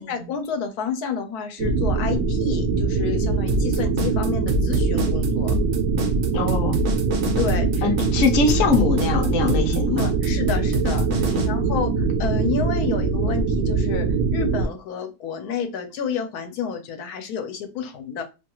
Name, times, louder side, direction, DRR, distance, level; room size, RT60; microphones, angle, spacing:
voice 1, 0.0-5.5 7.4-7.9 10.0-11.2 11.5-14.1 14.3-18.2, left 6 dB, 90° left, 1.1 m, -30 dB
sound 1, 1.6-14.7, right 4 dB, 80° right, 1.1 m, -23 dB
sound 2, 3.5-11.5, left 1 dB, 60° right, 0.7 m, -26 dB
voice 2, 6.3-6.8 7.8-10.1 11.2-11.6, left 4 dB, 65° left, 1.0 m, -23 dB
2.8 x 2.3 x 2.8 m
omnidirectional pair, 1.6 m